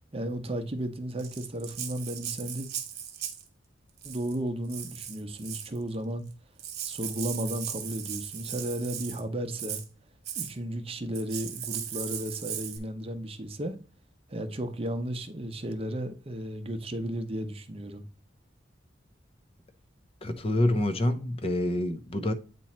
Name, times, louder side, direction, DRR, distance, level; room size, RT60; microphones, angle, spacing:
voice 1, 0.1-2.7 4.0-6.2 6.8-9.8 10.4-13.8 14.3-18.0, right 1 dB, 30° right, 0.8 m, -34 dB
Rattle (instrument), 1.2-3.5 4.0-4.4 4.7-5.8 6.3-6.4 6.6-9.2 9.6-9.9 10.3-10.5 11.1-12.8, right 9 dB, 55° right, 1.0 m, -37 dB
voice 2, 20.2-22.3, left 1 dB, 30° left, 0.7 m, -27 dB
8.5 x 3.0 x 4.3 m
head